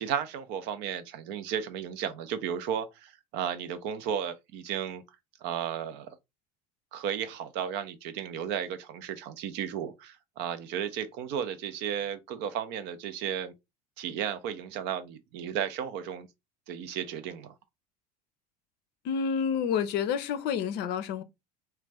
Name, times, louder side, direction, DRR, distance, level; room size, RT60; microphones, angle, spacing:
voice 1, 0.0-5.0 5.4-6.2 6.9-13.5 14.0-16.3 16.7-17.5, right 8 dB, 55° right, 0.5 m, -34 dB
voice 2, 19.0-21.2, left 7 dB, 55° left, 0.5 m, -29 dB
2.4 x 2.2 x 3.3 m
hypercardioid pair, 80°, 21 cm